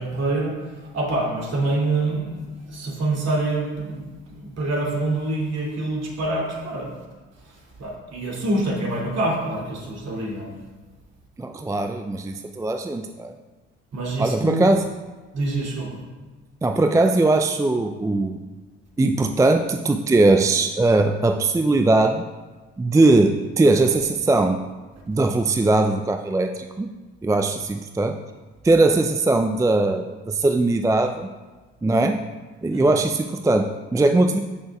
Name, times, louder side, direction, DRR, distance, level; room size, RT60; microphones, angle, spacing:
voice 1, 0.0-6.9 7.4-10.6 13.9-14.6 15.3-16.0 32.7-32.9, right 2 dB, 50° right, -2 dB, 2.9 m, -26 dB
voice 2, 11.4-13.3 14.2-14.9 16.6-18.4 19.0-22.2 22.8-24.6 25.1-26.9 27.2-28.2 28.6-31.3 31.8-32.2 32.6-34.4, right 2 dB, 10° right, 5 dB, 0.5 m, -20 dB
14.5 x 6.4 x 2.4 m, 1.3 s
hypercardioid pair, 55°, 34 cm